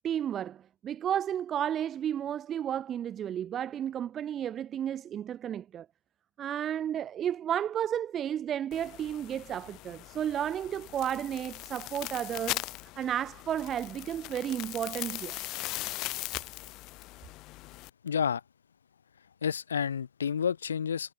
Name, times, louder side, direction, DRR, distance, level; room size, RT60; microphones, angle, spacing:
voice 1, 0.0-5.9 6.4-12.6 13.0-15.4, right 10 dB, 20° right, 7.4 m, -32 dB
sound 1, 8.7-17.9, left 20 dB, 30° left, 7.7 m, -40 dB
voice 2, 18.0-18.4 19.4-21.1, left 7 dB, 75° left, 3.3 m, -30 dB
hypercardioid pair, 130°, 0 cm